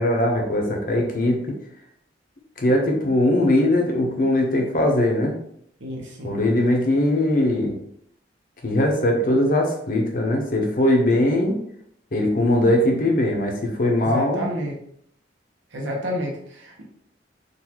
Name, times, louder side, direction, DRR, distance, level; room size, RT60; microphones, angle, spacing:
voice 1, 0.0-1.6 2.6-5.3 6.2-7.8 8.6-11.6 12.1-14.5, left 1 dB, 50° left, 1 dB, 0.7 m, -20 dB
voice 2, 5.8-6.4 14.0-14.7 15.7-16.8, equal, 85° right, -1 dB, 1.0 m, -30 dB
3.9 x 2.5 x 2.9 m, 0.68 s
head